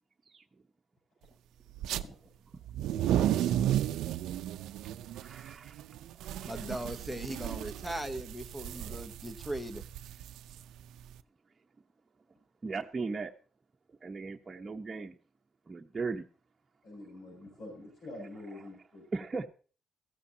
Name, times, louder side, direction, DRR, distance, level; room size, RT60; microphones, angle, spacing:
sound 1, 1.8-2.0 2.6-11.1, right 12 dB, 85° right, 0.5 m, -33 dB
voice 1, 3.0-3.5 16.8-19.1, left 1 dB, 60° left, 6.8 m, -47 dB
voice 2, 5.1-5.8 6.2-6.7 12.6-13.3 14.0-15.2 15.7-16.3 18.2-18.7 19.1-19.5, right 4 dB, 30° right, 1.0 m, -38 dB
voice 3, 6.4-9.8, right 1 dB, 5° left, 0.9 m, -39 dB
15.0 x 14.5 x 2.8 m
cardioid pair, 90°, 0 cm